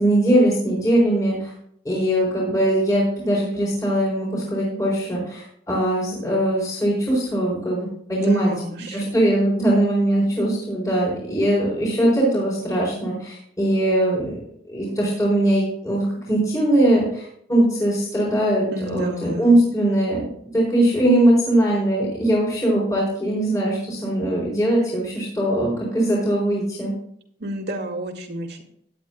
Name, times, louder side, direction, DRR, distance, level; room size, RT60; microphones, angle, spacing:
voice 1, 0.0-1.5 1.8-8.5 8.9-14.4 14.7-20.2 20.5-26.9, right 1 dB, 20° left, -6 dB, 4.8 m, -21 dB
voice 2, 8.1-9.1 18.7-19.6 27.4-28.6, equal, 65° right, 3 dB, 2.2 m, -31 dB
17.5 x 10.5 x 2.3 m, 0.67 s
head